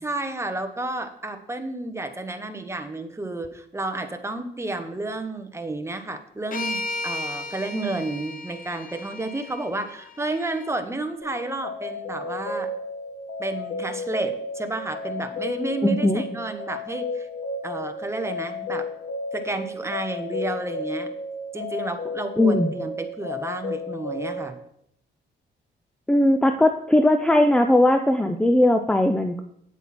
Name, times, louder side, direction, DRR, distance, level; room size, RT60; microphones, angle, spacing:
voice 1, 0.0-12.7 13.4-17.3 17.6-18.9 19.3-21.1 21.5-24.5, right 2 dB, 15° right, 7 dB, 1.1 m, -31 dB
sound 1, 6.5-10.7, left 2 dB, 45° left, 1.0 m, -34 dB
sound 2, 11.2-24.5, left 2 dB, 75° left, 2.0 m, -33 dB
voice 2, 15.8-16.2 22.4-22.7 26.1-29.4, left 1 dB, 5° left, 7 dB, 0.6 m, -19 dB
9.0 x 8.2 x 4.3 m, 0.72 s
cardioid pair, 90°, 20 cm